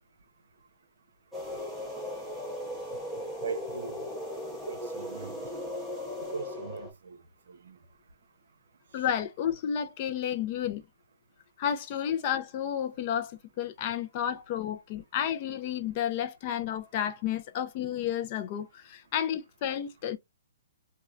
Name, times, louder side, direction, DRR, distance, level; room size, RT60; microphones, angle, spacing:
sound 1, 1.3-6.9, left 1 dB, 5° right, 0.8 m, -37 dB
voice 1, 3.4-4.0 4.5-5.3 6.3-7.2 7.5-7.8, right 4 dB, 70° right, 0.6 m, -40 dB
voice 2, 8.9-10.8 11.6-20.2, left 9 dB, 35° left, 0.5 m, -31 dB
3.0 x 2.3 x 2.3 m
hypercardioid pair, 150°, 0 cm